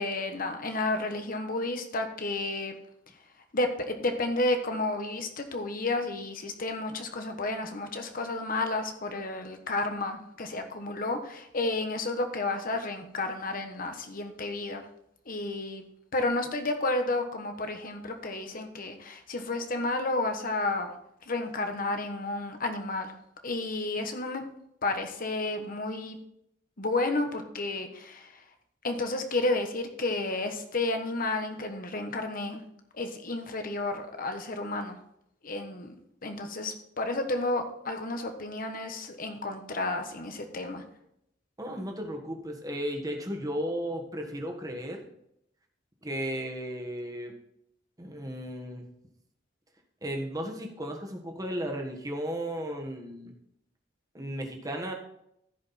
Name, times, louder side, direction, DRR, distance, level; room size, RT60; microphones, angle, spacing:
voice 1, 0.0-2.7 3.5-14.8 15.3-15.8 16.1-20.9 21.3-23.1 23.4-24.4 24.8-26.2 26.8-28.3 28.8-32.6 32.9-35.0 35.4-36.0 36.2-40.8, left 2 dB, 50° left, 6 dB, 1.2 m, -31 dB
voice 2, 41.6-45.1 46.0-47.4 48.0-48.9 50.0-53.3 54.1-54.9, equal, 20° right, 2 dB, 1.6 m, -35 dB
15.0 x 5.2 x 4.2 m, 0.76 s
head